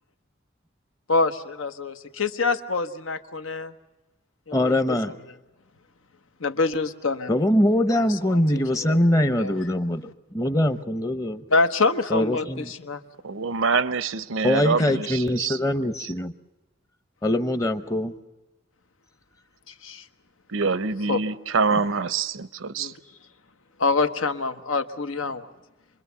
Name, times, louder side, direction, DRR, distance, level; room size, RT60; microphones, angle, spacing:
voice 1, 1.1-3.7 4.5-5.1 6.4-7.3 7.9-9.5 11.5-13.0 14.9-15.0 19.7-20.1 21.1-21.2 22.8-22.9 23.8-25.5, left 3 dB, 90° left, 1.2 m, -26 dB
voice 2, 4.5-5.2 7.3-11.4 12.1-12.7 14.4-16.3 17.2-18.1 21.7-21.8, left 1 dB, 15° left, 0.7 m, -23 dB
voice 3, 13.2-15.6 16.0-16.1 20.5-22.9, right 4 dB, 85° right, 0.8 m, -25 dB
27.0 x 21.5 x 7.0 m
head